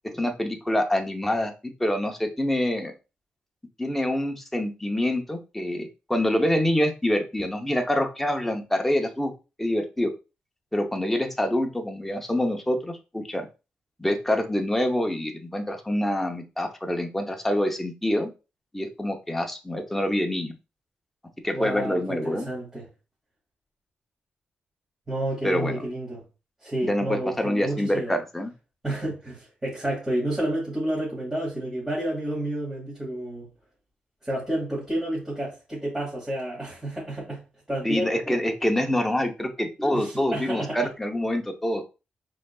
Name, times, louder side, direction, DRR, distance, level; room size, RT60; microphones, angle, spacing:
voice 1, 0.0-2.9 3.8-9.3 9.6-10.1 10.7-13.5 14.0-18.3 18.7-20.5 21.4-22.5 25.4-25.7 26.8-28.5 37.8-41.8, left 1 dB, 5° left, 0.8 m, -26 dB
voice 2, 21.5-22.8 25.1-26.2 26.6-28.1 28.8-33.5 34.2-37.4 37.7-38.4 39.8-40.8, right 1 dB, 15° right, 2.3 m, -30 dB
5.0 x 3.7 x 2.4 m
cardioid pair, 115°, 3 cm